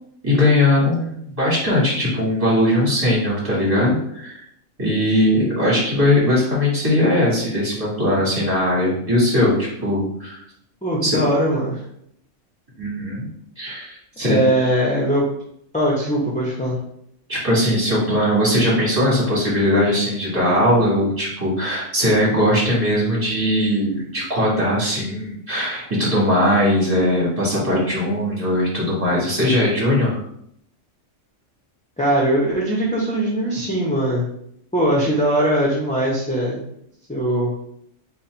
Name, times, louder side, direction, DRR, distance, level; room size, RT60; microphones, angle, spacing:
voice 1, 0.2-4.4 4.8-10.4 11.0-11.2 12.8-13.3 13.6-14.4 17.3-30.2, left 1 dB, 30° right, -6 dB, 1.8 m, -19 dB
voice 2, 10.8-11.8 14.2-15.2 15.7-16.8 32.0-34.2 34.7-36.6 37.1-37.5, right 1 dB, 10° left, -5 dB, 0.5 m, -20 dB
4.1 x 2.3 x 4.3 m, 0.70 s
omnidirectional pair, 1.3 m